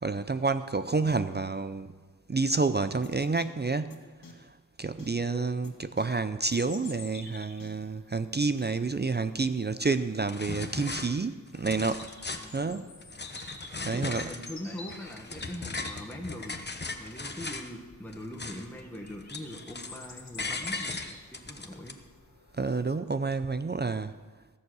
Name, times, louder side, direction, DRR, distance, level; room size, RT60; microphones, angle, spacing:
voice 1, 0.0-1.9 2.3-12.1 12.5-12.9 13.8-14.3 22.5-24.2, right 3 dB, 30° right, 11 dB, 0.5 m, -29 dB
sound 1, 3.0-3.1 3.4-3.5 3.9-4.0 4.2-4.3 5.0-5.1 5.6-5.7 6.0-6.1 6.5-6.6 6.8-6.9 7.6-7.7 8.6-8.7, left 4 dB, 70° left, 2.0 m, -48 dB
Bird vocalization bird call bird song, 6.5-23.0, left 3 dB, 50° left, 1.8 m, -50 dB
sound 2, 9.8-9.9 10.3-11.1 11.5-12.6 13.0-14.5 14.9-17.7 18.1-18.8 19.1-20.0 20.4-21.9, left 3 dB, 30° left, 1.0 m, -38 dB
voice 2, 12.3-13.0 13.8-16.5 17.0-22.0, left 1 dB, 5° left, 0 dB, 1.4 m, -42 dB
18.5 x 7.2 x 6.2 m, 1.3 s
wide cardioid pair, 80°, 35 cm